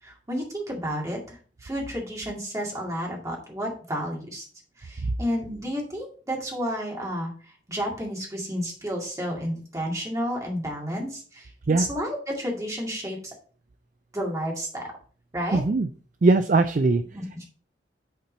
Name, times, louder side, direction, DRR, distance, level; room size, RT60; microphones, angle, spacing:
voice 1, 0.0-4.5 4.8-11.5 11.8-13.3 14.1-14.9 15.3-15.6 17.1-17.4, equal, 20° right, -1 dB, 2.2 m, -31 dB
voice 2, 15.5-15.9 16.2-17.0, right 3 dB, 45° right, 8 dB, 0.4 m, -20 dB
8.5 x 4.4 x 3.9 m, 0.41 s
head